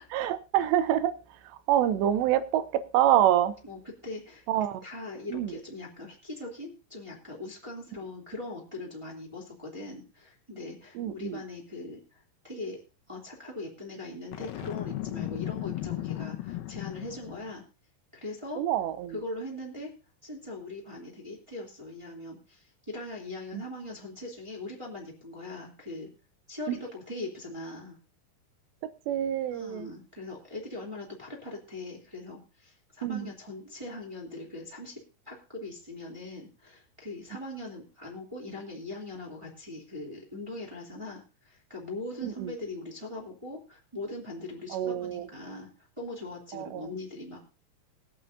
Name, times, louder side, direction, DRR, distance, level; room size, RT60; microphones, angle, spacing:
voice 1, 0.1-3.6 4.5-4.8 5.3-5.6 10.9-11.4 18.6-19.2 23.5-23.6 26.7-26.8 28.8-29.9 33.0-33.3 42.2-42.5 44.7-45.3 46.5-46.9, right 11 dB, 85° right, 3.0 m, -27 dB
voice 2, 3.6-4.4 4.8-12.0 12.4-12.8 13.1-17.6 18.1-18.6 19.1-19.9 20.2-26.1 26.5-28.0 29.5-35.0 35.2-45.7 46.0-47.4, left 2 dB, 10° right, 2.2 m, -40 dB
Boom, 14.3-17.5, left 14 dB, 75° left, 2.4 m, -35 dB
22.0 x 8.4 x 2.7 m
omnidirectional pair, 4.9 m